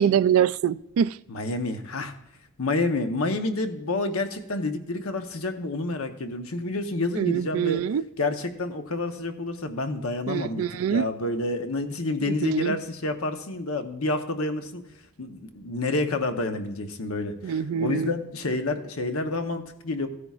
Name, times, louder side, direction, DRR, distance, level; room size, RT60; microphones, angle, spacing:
voice 1, 0.0-1.2 7.2-8.0 10.3-11.1 12.3-12.8 17.4-18.1, right 8 dB, 75° right, 0.3 m, -24 dB
voice 2, 1.3-2.1 2.6-7.8 8.2-10.6 10.9-14.8 15.2-20.1, left 2 dB, 75° left, 1.0 m, -29 dB
15.5 x 9.8 x 2.4 m
head